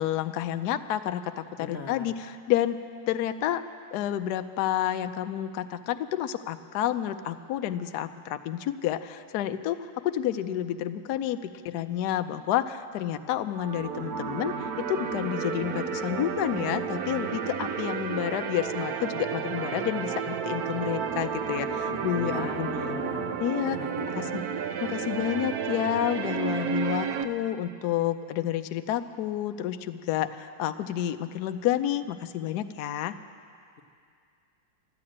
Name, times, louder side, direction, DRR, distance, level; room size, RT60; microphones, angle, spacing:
voice 1, 0.0-2.8 3.1-3.6 3.9-22.7 23.4-23.8 24.1-24.4 24.8-33.2, left 11 dB, 75° left, 10 dB, 0.9 m, -30 dB
voice 2, 1.6-2.2 21.9-23.3 23.7-24.3, left 5 dB, 55° left, 0 dB, 0.7 m, -39 dB
sound 1, 13.5-27.2, right 6 dB, 70° right, 0.9 m, -32 dB
13.5 x 11.5 x 8.6 m, 2.2 s
omnidirectional pair, 2.2 m